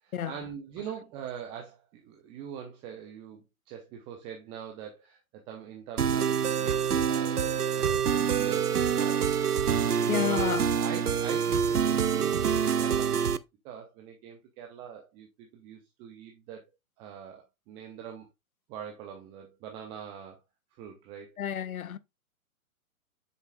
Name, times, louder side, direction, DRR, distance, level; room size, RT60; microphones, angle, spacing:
voice 1, 0.0-9.3 9.6-12.5 12.8-13.4 13.6-16.6 17.0-18.3 18.7-20.4 20.8-21.4, right 8 dB, 15° right, 0.6 m, -43 dB
sound 1, 6.0-13.4, right 7 dB, 90° right, 0.7 m, -26 dB
voice 2, 10.1-10.7 21.4-22.0, left 10 dB, 70° left, 0.7 m, -30 dB
7.7 x 6.4 x 2.2 m
figure-of-eight pair, 120°, 44 cm